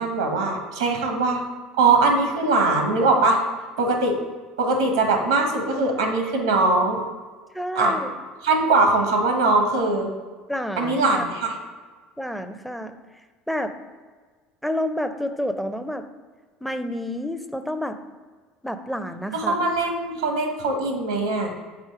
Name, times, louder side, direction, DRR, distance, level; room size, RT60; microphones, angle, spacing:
voice 1, 0.0-1.4 1.8-3.4 3.8-4.2 4.6-7.0 7.7-7.9 8.4-10.1 10.8-11.5 19.3-21.5, right 3 dB, 90° right, 4 dB, 0.9 m, -21 dB
voice 2, 7.5-8.1 10.5-11.3 12.2-13.0 13.5-13.7 14.6-16.1 16.6-18.0 18.6-19.6, equal, ahead, 8 dB, 0.5 m, -29 dB
4.9 x 4.2 x 4.7 m, 1.4 s
hypercardioid pair, 80°, 3 cm